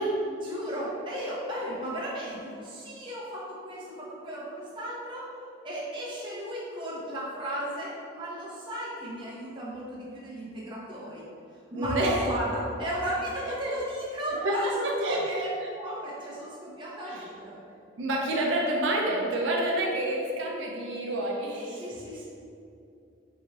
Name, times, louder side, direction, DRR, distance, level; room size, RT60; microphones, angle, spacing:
voice 1, 0.3-5.3 5.6-11.2 11.7-17.6 21.5-22.2, equal, 25° right, -6 dB, 0.7 m, -34 dB
voice 2, 11.7-12.2 14.4-14.7 15.0-15.5 17.1-17.3 18.0-21.6, right 1 dB, 80° right, -1 dB, 0.5 m, -28 dB
3.9 x 2.6 x 2.9 m, 2.5 s
head